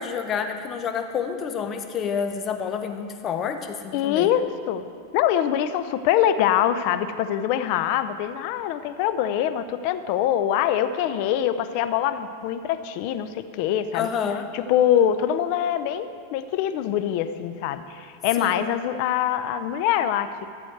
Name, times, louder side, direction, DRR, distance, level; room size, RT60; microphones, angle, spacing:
voice 1, 0.0-4.3 13.9-14.5 18.4-18.6, left 7 dB, 30° left, 7 dB, 0.9 m, -29 dB
voice 2, 3.9-4.8 5.1-14.1 14.5-20.5, left 10 dB, 55° left, 11 dB, 0.6 m, -24 dB
13.5 x 8.0 x 4.7 m, 2.2 s
supercardioid pair, 130°, 0 cm